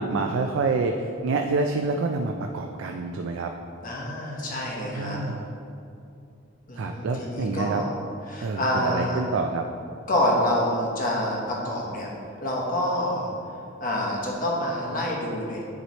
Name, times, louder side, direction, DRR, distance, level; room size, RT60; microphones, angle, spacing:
voice 1, 0.0-3.5 4.9-5.5 6.8-7.8 8.4-9.7, right 3 dB, 70° right, 4 dB, 0.3 m, -27 dB
voice 2, 3.8-5.2 6.7-8.0 8.3-9.2 10.1-12.1 12.4-13.3 13.8-15.6, left 1 dB, 45° left, -3 dB, 1.1 m, -27 dB
9.4 x 3.2 x 4.1 m, 2.5 s
head